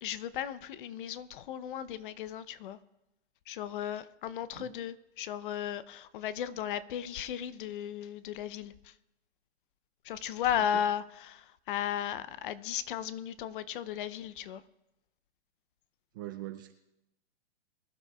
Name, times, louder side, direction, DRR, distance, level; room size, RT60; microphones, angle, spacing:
voice 1, 0.0-2.8 3.5-8.9 10.0-14.6, left 10 dB, 50° left, 15 dB, 0.8 m, -35 dB
voice 2, 16.1-16.7, right 15 dB, 20° right, 6 dB, 0.3 m, -42 dB
24.0 x 12.0 x 2.4 m, 0.90 s
hypercardioid pair, 145°, 34 cm